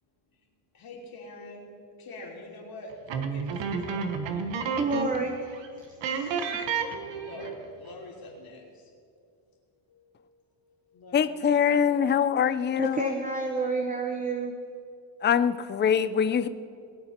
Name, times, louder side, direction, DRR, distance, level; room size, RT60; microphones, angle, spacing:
voice 1, 0.7-5.0 6.1-6.2 7.1-8.9 9.9-12.0, left 2 dB, 50° left, -1 dB, 3.2 m, -46 dB
sound 1, 3.1-5.3 5.5-5.7 6.0-7.6, right 5 dB, 70° right, 1.3 m, -31 dB
voice 2, 4.8-5.4 6.1-6.6 12.8-14.5, right 3 dB, 15° right, 3 dB, 0.9 m, -29 dB
voice 3, 11.1-13.1 15.2-16.5, left 8 dB, 25° left, 12 dB, 0.4 m, -24 dB
20.5 x 8.8 x 4.4 m, 2.4 s
cardioid pair, 120°, 45 cm